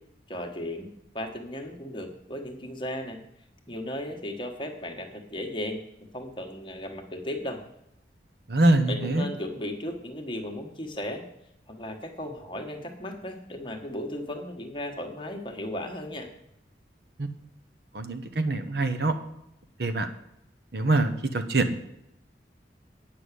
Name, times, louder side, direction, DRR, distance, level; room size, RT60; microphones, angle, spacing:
voice 1, 0.3-0.9 1.1-3.2 3.7-5.8 6.1-7.6 8.9-11.2 11.7-16.3, left 1 dB, 25° left, 3 dB, 1.3 m, -35 dB
voice 2, 8.5-9.3 17.2-17.3 17.9-19.1 19.8-20.1 20.7-21.8, right 2 dB, 60° right, 8 dB, 1.0 m, -24 dB
9.5 x 5.9 x 8.3 m, 0.79 s
head